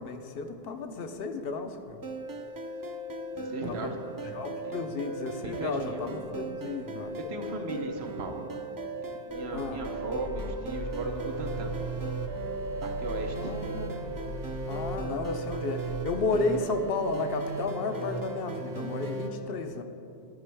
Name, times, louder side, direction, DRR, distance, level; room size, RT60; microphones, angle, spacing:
voice 1, 0.0-2.1 3.6-3.9 4.2-7.2 9.5-9.9 13.4-14.0 14.7-19.8, left 3 dB, 70° left, 7 dB, 0.8 m, -33 dB
sound 1, 2.0-19.3, right 3 dB, 30° right, 0.4 m, -36 dB
voice 2, 3.3-3.9 4.6-4.8 5.4-6.1 7.3-8.5 8.8-11.7 12.8-13.6, right 2 dB, 90° right, 3 dB, 1.1 m, -37 dB
sound 2, 9.3-17.1, left 1 dB, 90° left, 1.3 m, -40 dB
13.0 x 5.2 x 3.3 m, 2.8 s
omnidirectional pair, 1.0 m